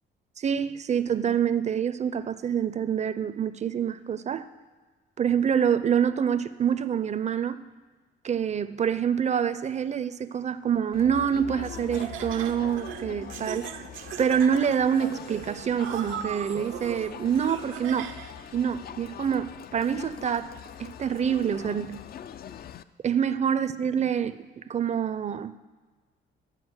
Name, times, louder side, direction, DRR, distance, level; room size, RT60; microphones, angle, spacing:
voice 1, 0.4-4.5 5.2-7.6 8.2-13.7 14.2-18.1 18.5-20.5 20.8-22.0 23.0-24.4 24.7-25.5, right 8 dB, 35° right, 13 dB, 0.5 m, -26 dB
Crowd, 10.9-22.8, left 9 dB, 50° left, 0.4 m, -43 dB
Laughter, 11.6-18.5, right 9 dB, 80° right, 0.6 m, -39 dB
11.5 x 4.7 x 7.9 m, 1.3 s
cardioid pair, 90°, 20 cm